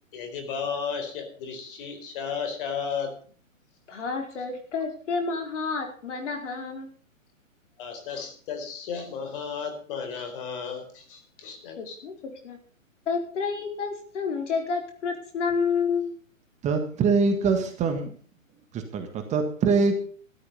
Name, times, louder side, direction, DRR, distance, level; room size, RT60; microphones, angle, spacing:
voice 1, 0.1-3.2 7.8-12.0, left 6 dB, 40° left, 7 dB, 4.4 m, -34 dB
voice 2, 3.9-6.9 11.8-12.2 12.4-12.6 13.1-16.2, left 5 dB, 60° left, 4 dB, 4.6 m, -29 dB
voice 3, 16.6-18.1 18.7-20.0, right 4 dB, 15° right, 6 dB, 1.7 m, -24 dB
13.0 x 13.0 x 5.5 m, 0.43 s
hypercardioid pair, 135°, 40 cm